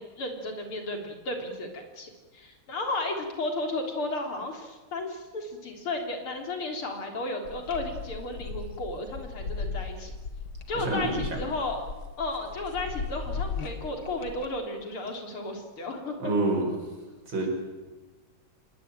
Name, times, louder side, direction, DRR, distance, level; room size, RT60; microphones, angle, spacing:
voice 1, 0.0-10.1 10.7-11.9 12.2-16.3, left 2 dB, 85° left, 4 dB, 4.5 m, -33 dB
sound 1, 7.4-14.5, left 4 dB, 70° left, 2.7 m, -37 dB
voice 2, 10.7-11.4 16.2-16.7 17.3-17.5, right 2 dB, 65° right, 2 dB, 6.4 m, -27 dB
26.0 x 20.5 x 9.1 m, 1.2 s
omnidirectional pair, 2.3 m